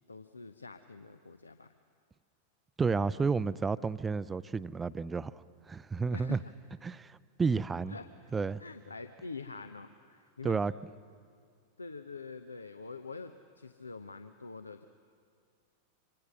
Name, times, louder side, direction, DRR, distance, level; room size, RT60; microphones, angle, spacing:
voice 1, 0.1-1.7 3.7-3.8 6.1-6.5 7.9-8.1 8.6-10.6 11.8-14.9, left 4 dB, 80° left, 9 dB, 0.8 m, -45 dB
voice 2, 2.8-5.3 5.7-6.4 6.8-8.0 8.3-8.6 10.4-10.7, right 4 dB, 15° right, 18 dB, 0.5 m, -31 dB
26.0 x 24.5 x 6.4 m, 2.2 s
figure-of-eight pair, 90°, 0 cm